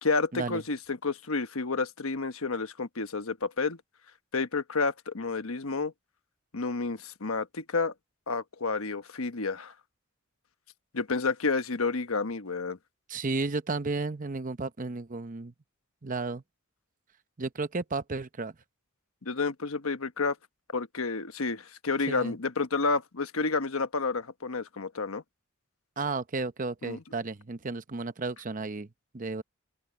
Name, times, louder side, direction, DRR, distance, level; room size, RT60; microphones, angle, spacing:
voice 1, 0.0-3.8 4.3-5.9 6.5-7.9 8.3-9.7 10.9-12.8 19.2-20.4 20.7-25.2 26.8-27.0, left 4 dB, 85° left, 1.2 m, -30 dB
voice 2, 13.1-15.5 16.0-16.4 17.4-18.5 22.1-22.3 26.0-28.9 29.1-29.4, right 3 dB, 40° right, 0.8 m, -33 dB
open air
head